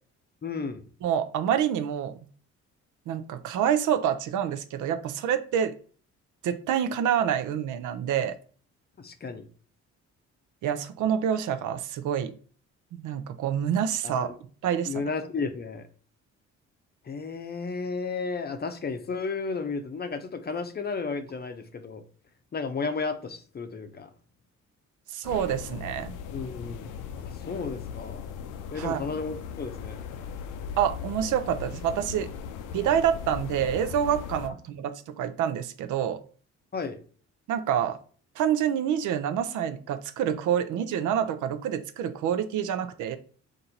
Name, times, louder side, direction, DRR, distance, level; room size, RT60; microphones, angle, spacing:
voice 1, 0.4-0.8 9.0-9.5 14.0-14.4 14.9-15.9 17.0-22.0 22.5-24.1 26.3-26.9 27.2-28.2 28.7-30.0 36.7-37.0, left 4 dB, 35° left, 0.6 m, -33 dB
voice 2, 1.0-2.2 3.1-5.7 6.4-8.3 10.6-12.3 12.9-14.3 14.6-14.9 25.1-26.1 28.8-29.0 30.8-32.3 32.7-36.2 37.5-38.0 38.4-43.2, right 9 dB, 80° right, 0.6 m, -27 dB
sound 1, 25.2-34.5, left 7 dB, 90° left, 0.5 m, -38 dB
4.3 x 2.6 x 3.9 m
cardioid pair, 90°, 30 cm